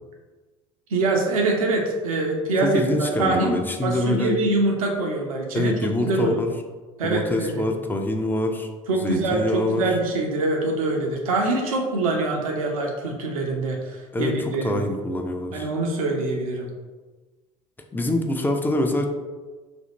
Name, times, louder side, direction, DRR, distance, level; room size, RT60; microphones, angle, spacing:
voice 1, 0.9-6.4 7.0-7.7 8.9-14.8 15.5-16.7, right 2 dB, 75° right, 0 dB, 0.7 m, -24 dB
voice 2, 2.6-4.4 5.5-6.5 7.0-8.7 9.0-9.8 14.1-15.7 17.9-19.1, left 1 dB, 10° left, 4 dB, 0.5 m, -25 dB
2.8 x 2.6 x 4.1 m, 1.3 s
figure-of-eight pair, 65°, 18 cm